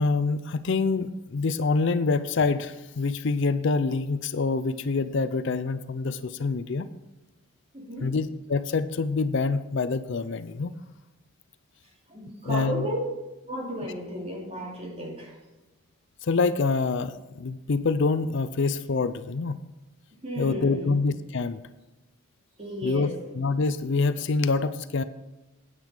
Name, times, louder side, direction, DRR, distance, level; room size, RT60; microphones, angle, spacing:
voice 1, 0.0-6.9 8.0-10.7 12.5-12.9 16.2-19.6 20.4-21.6 22.8-23.1 23.4-25.0, left 4 dB, 55° left, 13 dB, 0.4 m, -26 dB
voice 2, 7.7-8.1 12.1-13.1 13.4-15.4 20.2-21.0 22.6-23.2, equal, 30° right, -2 dB, 2.6 m, -34 dB
9.5 x 9.0 x 4.9 m, 1.1 s
head